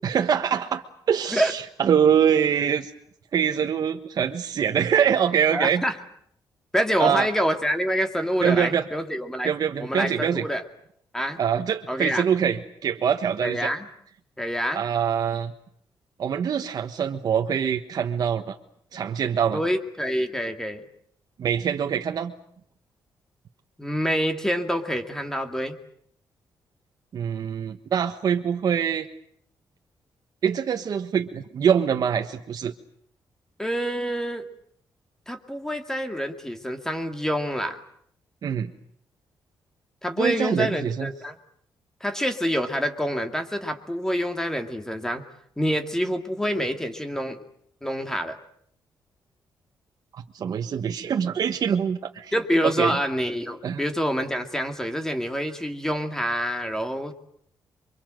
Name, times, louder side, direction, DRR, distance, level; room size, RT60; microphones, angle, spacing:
voice 1, 0.0-0.8 1.1-2.9 3.3-5.8 7.0-7.3 8.4-8.8 9.4-10.4 11.4-13.7 14.7-15.5 16.2-18.6 18.9-19.6 21.4-22.3 27.1-29.1 30.4-32.7 38.4-38.7 40.2-41.1 50.1-52.3 52.6-53.0 53.6-53.8, right 8 dB, 55° right, 4 dB, 1.4 m, -24 dB
voice 2, 5.5-6.0 6.7-9.5 9.8-10.6 11.1-11.4 11.9-12.2 13.4-13.8 14.4-14.8 19.5-20.8 23.8-25.8 33.6-34.5 35.3-37.8 40.0-41.4 42.0-45.2 45.6-47.4 47.8-48.4 52.3-57.1, equal, 5° left, 6 dB, 2.3 m, -26 dB
28.5 x 24.5 x 7.8 m, 0.67 s
wide cardioid pair, 145°, 8 cm